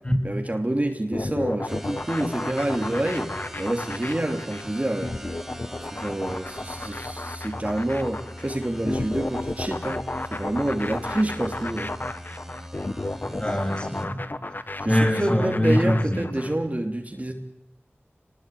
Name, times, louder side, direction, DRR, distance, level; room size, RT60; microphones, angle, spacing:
voice 1, 0.2-3.3 3.6-5.1 5.8-10.0 10.3-11.9 14.8-17.3, right 1 dB, 35° right, 3 dB, 2.9 m, -27 dB
sound 1, 1.1-16.5, left 2 dB, 45° left, 1.3 m, -32 dB
sound 2, 1.7-14.1, equal, 5° right, 3.7 m, -42 dB
voice 2, 13.2-14.2 14.9-16.3, left 1 dB, 25° left, 2 dB, 7.1 m, -23 dB
27.0 x 20.0 x 9.3 m, 0.81 s
wide cardioid pair, 50°, 4 cm